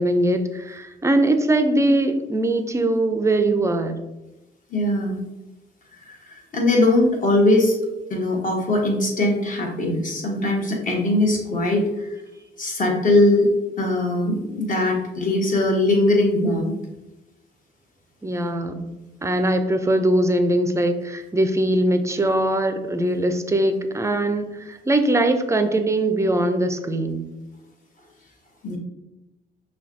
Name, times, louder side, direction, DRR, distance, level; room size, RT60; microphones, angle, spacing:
voice 1, 0.0-4.0 18.2-27.2, right 1 dB, 15° right, 8 dB, 0.4 m, -21 dB
voice 2, 4.7-5.2 6.1-7.8 8.1-11.9 12.6-13.5 13.8-16.7 28.6-28.8, left 1 dB, 40° left, 0 dB, 1.2 m, -20 dB
5.7 x 2.3 x 2.6 m, 1.0 s
cardioid pair, 90°, 20 cm